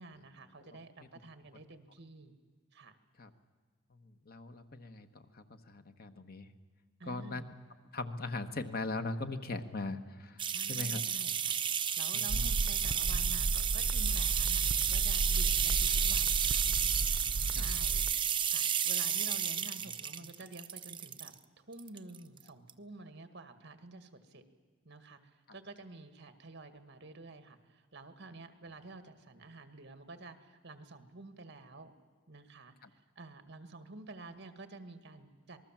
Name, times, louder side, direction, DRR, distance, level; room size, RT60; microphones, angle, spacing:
voice 1, 0.0-2.4 2.7-3.0 7.0-7.5 10.5-16.7 17.6-18.1 18.5-24.4 24.9-31.9 32.3-35.6, right 2 dB, 60° right, 10 dB, 1.8 m, -50 dB
voice 2, 4.3-5.1 5.3-6.5 7.1-7.4 7.9-11.0 12.1-12.5 17.5-17.6 20.2-20.3 32.8-32.9, left 2 dB, 50° left, 8 dB, 1.3 m, -39 dB
sound 1, 10.4-21.3 21.8-22.4 22.7-22.8, right 8 dB, 25° right, 0.8 m, -32 dB
sound 2, 12.3-18.1, right 2 dB, 80° right, 0.7 m, -34 dB
26.5 x 20.0 x 7.5 m, 1.5 s
head